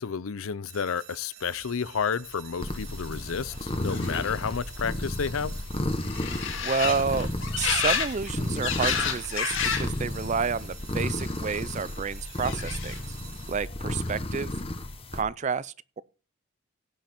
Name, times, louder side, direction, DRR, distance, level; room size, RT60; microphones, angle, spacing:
voice 1, 0.0-5.5, left 6 dB, 75° left, 0.6 m, -31 dB
sound 1, 0.7-13.5, right 10 dB, 90° right, 2.1 m, -50 dB
sound 2, 2.4-2.5 2.7-10.0 10.3-10.9 11.8-13.2 13.5-14.1, left 6 dB, 60° left, 2.0 m, -32 dB
sound 3, 2.6-15.2, left 1 dB, 25° left, 1.1 m, -33 dB
voice 2, 6.6-7.3 7.6-13.1 13.5-14.5 15.1-16.0, right 5 dB, 35° right, 0.4 m, -30 dB
17.0 x 5.8 x 4.4 m
head